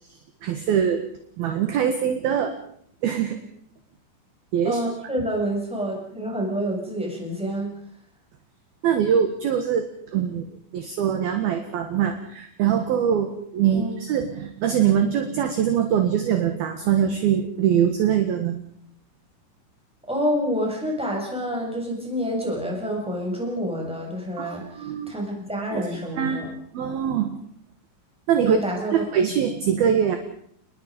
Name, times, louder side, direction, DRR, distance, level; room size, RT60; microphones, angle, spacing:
voice 1, 0.4-1.1 1.4-2.6 3.0-3.4 4.5-4.8 8.8-10.5 10.7-18.6 24.4-25.2 25.7-25.8 26.1-26.4 26.7-27.4 28.3-28.6 28.9-30.2, right 8 dB, 60° right, 7 dB, 2.9 m, -23 dB
voice 2, 4.6-7.7 13.7-13.9 20.1-26.5 28.4-29.1, equal, ahead, -1 dB, 6.9 m, -28 dB
29.5 x 20.5 x 5.3 m, 0.64 s
omnidirectional pair, 5.9 m